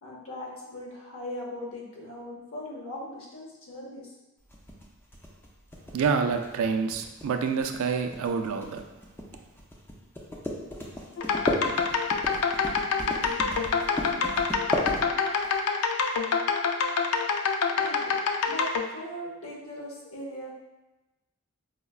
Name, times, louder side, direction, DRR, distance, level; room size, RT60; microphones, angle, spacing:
voice 1, 0.0-4.1 13.0-13.5 17.7-18.2 18.4-18.6 18.9-20.5, left 1 dB, 65° left, -2 dB, 0.8 m, -39 dB
sound 1, 4.5-15.5, left 1 dB, 10° left, 0.4 m, -34 dB
voice 2, 5.9-8.8, right 5 dB, 65° right, 6 dB, 0.3 m, -27 dB
sound 2, 11.2-18.8, left 5 dB, 90° left, 0.3 m, -26 dB
4.8 x 2.1 x 2.4 m, 1.0 s
head